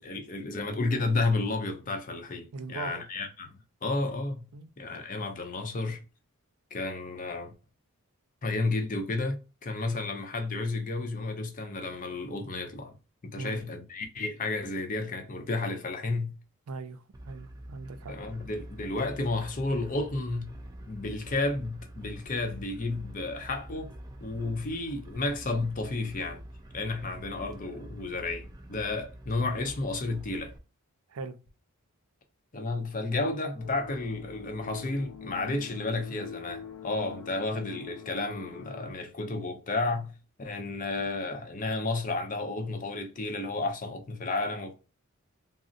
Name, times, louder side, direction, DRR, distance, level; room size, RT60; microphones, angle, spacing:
voice 1, 0.0-4.5 4.8-6.0 6.7-7.5 8.4-12.9 13.2-16.3 18.1-20.5 20.9-23.9 24.2-26.4 26.7-30.5 32.5-40.1 40.4-44.7, left 2 dB, 35° left, 0.6 m, -32 dB
voice 2, 2.5-3.0 4.5-4.7 13.4-13.7 16.7-18.1 31.1-31.4, right 4 dB, 85° right, 0.5 m, -40 dB
sound 1, 17.1-30.6, right 1 dB, 15° right, 0.3 m, -46 dB
sound 2, 33.6-38.9, left 7 dB, 75° left, 0.7 m, -45 dB
3.8 x 2.0 x 2.4 m
head